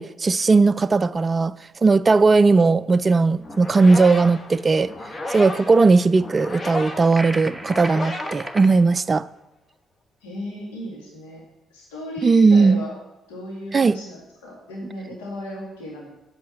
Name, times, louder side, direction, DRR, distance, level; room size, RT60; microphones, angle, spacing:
voice 1, 0.0-1.5 1.8-4.9 5.3-9.3 12.2-12.9 13.7-14.0, right 4 dB, 30° right, 16 dB, 0.3 m, -17 dB
sound 1, 3.4-9.3, left 1 dB, 30° left, 1.2 m, -34 dB
sound 2, 7.1-8.7, right 1 dB, ahead, 0.9 m, -34 dB
voice 2, 10.2-11.4 11.7-12.9 13.3-16.1, left 1 dB, 70° left, -4 dB, 2.4 m, -35 dB
8.5 x 5.3 x 7.3 m, 0.91 s
figure-of-eight pair, 45°, 0 cm